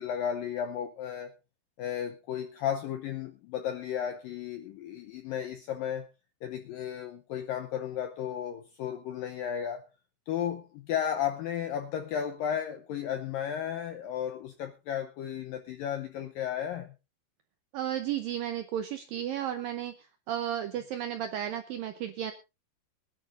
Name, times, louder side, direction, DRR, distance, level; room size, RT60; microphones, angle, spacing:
voice 1, 0.0-1.3 1.8-6.1 6.4-9.9 10.3-16.9, left 9 dB, 80° left, 6 dB, 2.0 m, -34 dB
voice 2, 17.7-19.9 20.3-22.3, right 10 dB, 80° right, 8 dB, 2.0 m, -33 dB
23.5 x 10.5 x 2.6 m, 0.28 s
omnidirectional pair, 5.0 m